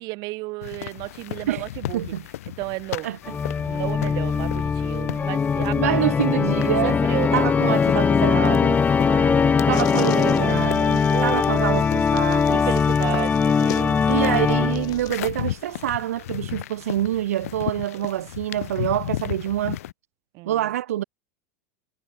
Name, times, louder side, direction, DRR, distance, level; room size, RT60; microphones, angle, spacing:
voice 1, 0.0-2.0 2.6-3.1 3.6-6.0 6.8-7.5 9.0-9.6 11.1-11.4 12.6-14.0 20.3-20.6, right 24 dB, 55° right, 1.8 m, -32 dB
sound 1, 0.6-19.9, left 14 dB, 75° left, 1.4 m, -36 dB
voice 2, 1.9-2.3 3.0-3.3 5.1-5.2 5.7-7.0 7.3-8.8 9.7-12.7 14.1-19.8 20.5-21.0, right 13 dB, 80° right, 0.8 m, -26 dB
Organ, 3.3-15.1, left 6 dB, 20° left, 0.5 m, -21 dB
sound 2, 9.7-15.3, left 21 dB, 55° left, 2.9 m, -44 dB
hypercardioid pair, 95°, 8 cm